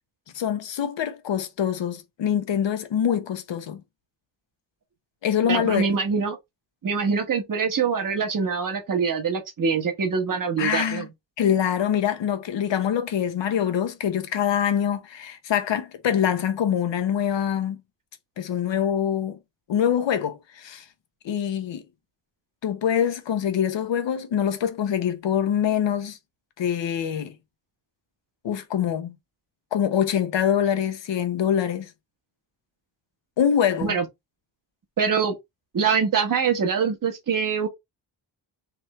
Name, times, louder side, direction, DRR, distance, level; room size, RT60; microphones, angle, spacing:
voice 1, 0.3-3.8 5.2-5.8 10.6-11.1 11.4-17.8 18.4-19.4 19.7-20.8 21.2-21.8 22.6-26.2 26.6-27.3 28.4-29.1 29.7-31.9 33.4-34.0, left 9 dB, 90° left, 1.0 m, -24 dB
voice 2, 5.5-6.4 6.8-11.1 33.8-34.0 35.0-35.4 35.7-37.7, right 6 dB, 50° right, 1.2 m, -24 dB
3.5 x 3.3 x 4.2 m
wide cardioid pair, 160°, 43 cm